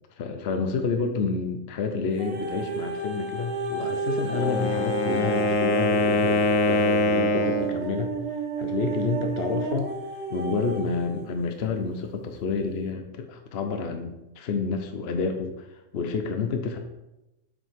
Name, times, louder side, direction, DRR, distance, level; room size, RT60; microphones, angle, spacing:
voice 1, 0.1-8.1 8.6-9.9 10.3-16.8, left 4 dB, 60° left, 5 dB, 0.9 m, -29 dB
sound 1, 2.2-11.3 11.9-12.0, right 3 dB, 60° right, 1.1 m, -32 dB
Wind instrument woodwind instrument, 4.2-7.8, left 2 dB, 85° left, 1.1 m, -23 dB
7.5 x 6.3 x 3.5 m, 0.95 s
omnidirectional pair, 1.3 m